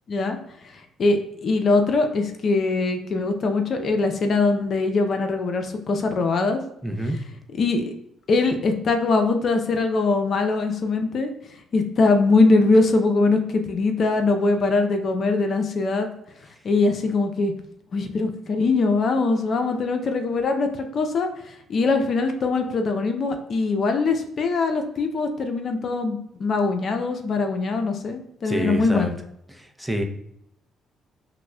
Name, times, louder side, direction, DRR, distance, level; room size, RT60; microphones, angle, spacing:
voice 1, 1.0-6.6 7.0-7.2 7.5-7.8 8.3-11.3 11.7-16.1 16.6-17.5 17.9-29.2, left 3 dB, 55° left, 5 dB, 0.5 m, -22 dB
voice 2, 6.8-7.2 28.5-29.1 29.8-30.0, right 1 dB, 5° right, 3 dB, 0.6 m, -26 dB
5.8 x 2.1 x 2.2 m, 0.76 s
supercardioid pair, 60°, 0 cm